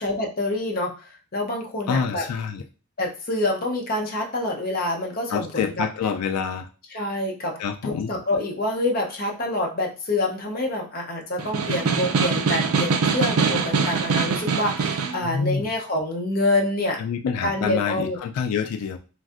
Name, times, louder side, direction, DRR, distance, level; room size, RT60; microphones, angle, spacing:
voice 1, 0.0-2.2 3.0-5.8 6.9-17.0 17.4-18.2, left 2 dB, 40° left, 0 dB, 0.6 m, -27 dB
voice 2, 1.9-2.6 5.3-6.7 7.6-8.1 15.2-15.7 17.0-19.0, left 6 dB, 90° left, 8 dB, 0.3 m, -27 dB
Snare drum, 11.4-15.2, right 5 dB, 75° right, 0.4 m, -23 dB
3.1 x 2.6 x 2.4 m, 0.35 s
head